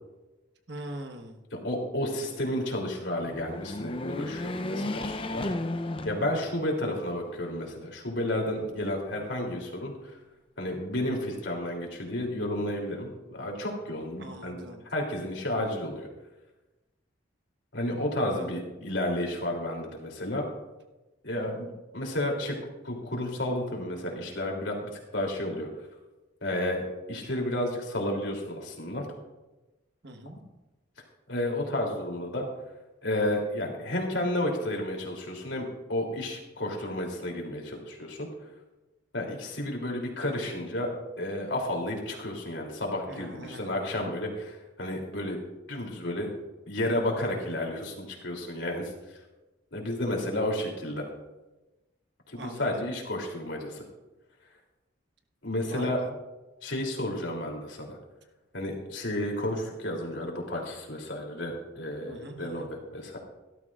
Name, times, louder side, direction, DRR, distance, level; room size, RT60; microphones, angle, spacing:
voice 1, 0.7-1.4 14.2-14.8 18.3-18.6 30.0-30.4 43.1-43.7 52.4-52.8 55.6-56.1 62.0-62.7, right 1 dB, 60° right, 5 dB, 1.4 m, -42 dB
voice 2, 1.5-5.5 6.0-10.2 10.6-14.6 14.9-16.1 17.7-20.5 21.2-21.7 21.9-22.6 22.8-25.7 26.4-29.1 31.3-32.5 33.0-38.3 39.1-40.9 41.2-45.4 45.7-46.3 46.7-48.9 49.7-51.1 52.3-53.8 55.4-56.0 56.6-58.0 58.5-63.2, left 1 dB, 65° left, 0 dB, 3.1 m, -32 dB
sound 1, 3.2-6.8 7.3-7.4 8.5-9.2, left 1 dB, 25° left, 0.6 m, -34 dB
17.5 x 12.5 x 2.5 m, 1.1 s
head